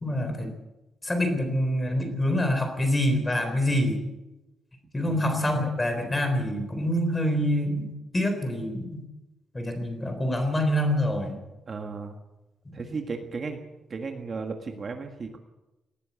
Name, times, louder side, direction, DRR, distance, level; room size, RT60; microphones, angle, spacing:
voice 1, 0.0-0.5 1.0-4.0 4.9-9.0 9.5-11.4 12.7-12.8, left 1 dB, 15° left, 6 dB, 3.8 m, -26 dB
voice 2, 5.0-5.5 11.7-12.2 12.7-13.6 13.9-15.4, right 4 dB, 30° right, 4 dB, 1.7 m, -35 dB
19.5 x 17.0 x 8.4 m, 1.0 s
wide cardioid pair, 180°, 0 cm